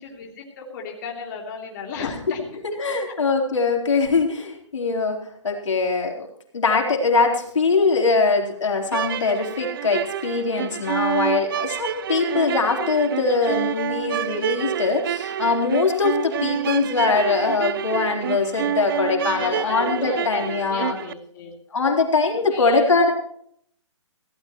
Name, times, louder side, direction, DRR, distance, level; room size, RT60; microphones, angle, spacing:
voice 1, 0.0-2.6 19.3-21.5 22.3-22.8, left 5 dB, 40° left, 0 dB, 3.1 m, -35 dB
voice 2, 2.8-5.2 5.4-6.3 6.5-21.0 21.7-23.1, left 4 dB, 75° left, 1 dB, 3.9 m, -22 dB
sound 1, 8.8-21.1, right 10 dB, 45° right, 0.5 m, -28 dB
18.0 x 16.5 x 3.1 m, 0.67 s
hypercardioid pair, 145°, 16 cm